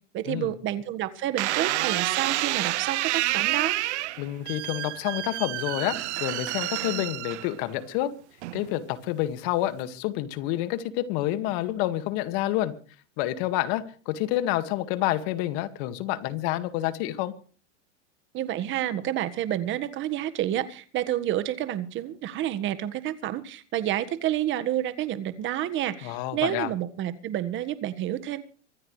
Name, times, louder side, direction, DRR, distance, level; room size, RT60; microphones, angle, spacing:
voice 1, 0.1-3.8 18.3-28.4, right 12 dB, 30° right, 12 dB, 1.6 m, -29 dB
sound 1, 1.4-7.8 8.4-8.9, right 17 dB, 65° right, 0.9 m, -29 dB
voice 2, 4.2-8.1 8.5-12.7 13.2-17.3 26.0-26.7, left 14 dB, 50° left, 11 dB, 2.0 m, -28 dB
25.0 x 13.5 x 3.3 m, 0.39 s
supercardioid pair, 135°, 36 cm